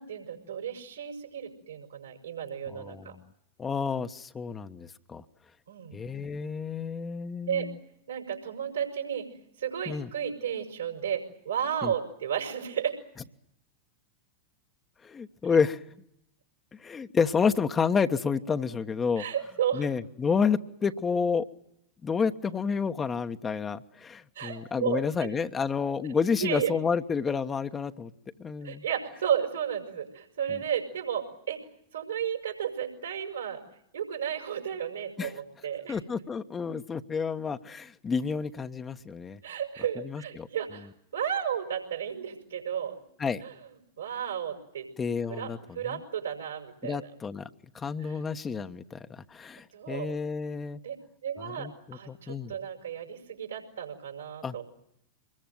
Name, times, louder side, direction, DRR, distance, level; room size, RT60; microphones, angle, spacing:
voice 1, 0.0-3.2 5.7-6.0 7.5-7.7 8.1-9.3 9.6-13.0 19.2-19.9 24.3-25.3 26.4-26.7 28.6-31.6 31.9-33.6 33.9-36.0 39.4-43.0 43.4-43.5 44.0-44.9 45.3-45.5 45.7-47.1 48.0-48.2 49.7-50.1 50.8-51.0 51.2-54.7, right 9 dB, 75° right, 3 dB, 6.0 m, -33 dB
voice 2, 2.7-3.1 3.6-5.2 5.9-7.8 9.9-10.1 11.8-11.9 15.0-15.8 16.8-19.2 19.7-21.4 22.0-28.1 28.4-28.8 30.5-30.6 35.2-35.3 35.9-39.4 40.0-40.5 43.2-43.4 45.0-45.6 45.9-46.0 46.8-47.5 47.7-50.8 51.4-52.5 54.4-54.5, left 5 dB, 20° left, 7 dB, 1.2 m, -30 dB
25.0 x 21.5 x 9.3 m, 0.75 s
figure-of-eight pair, 90°, 0 cm